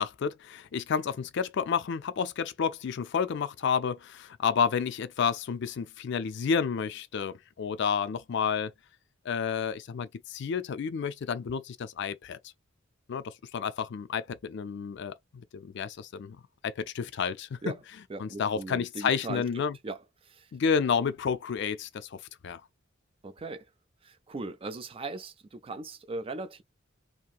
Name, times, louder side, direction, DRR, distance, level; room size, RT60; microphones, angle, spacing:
voice 1, 0.0-8.7 9.3-12.4 13.1-15.1 15.5-16.4 16.6-17.6 18.2-19.8 20.5-22.6, left 6 dB, 60° left, 0.4 m, -30 dB
voice 2, 18.1-19.4 19.8-20.5 23.2-23.7 24.0-26.6, right 2 dB, 30° right, 0.4 m, -39 dB
2.9 x 2.6 x 2.3 m
head